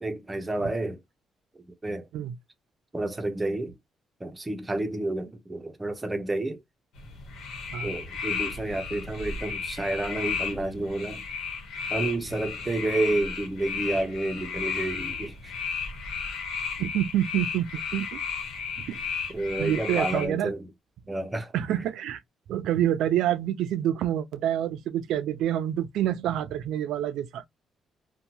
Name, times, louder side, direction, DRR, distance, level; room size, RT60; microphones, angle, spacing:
voice 1, 0.0-1.0 1.8-2.1 2.9-3.7 4.2-6.6 7.8-11.2 11.9-15.5 19.3-20.7 21.1-21.8, right 2 dB, 20° right, 0.7 m, -30 dB
sound 1, 7.0-20.3, left 5 dB, 85° left, 1.0 m, -34 dB
voice 2, 16.8-18.2 18.9-19.0 19.6-20.5 21.5-22.2 22.5-27.4, right 11 dB, 85° right, 0.4 m, -27 dB
2.7 x 2.2 x 2.8 m
cardioid pair, 90°, 0 cm